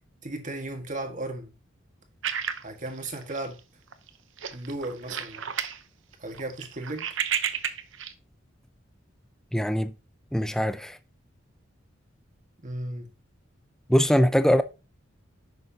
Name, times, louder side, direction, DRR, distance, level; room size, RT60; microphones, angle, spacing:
voice 1, 0.2-1.5 2.6-3.6 4.5-5.5 6.2-7.1 12.6-13.1, right 1 dB, 40° right, 1.6 m, -35 dB
sound 1, 2.2-3.6 3.9-4.1 4.4-5.8 6.1-8.1, right 8 dB, 70° right, 0.8 m, -31 dB
voice 2, 9.5-9.9 10.3-11.0 13.9-14.6, equal, 5° left, 0.5 m, -22 dB
10.5 x 6.8 x 2.8 m
head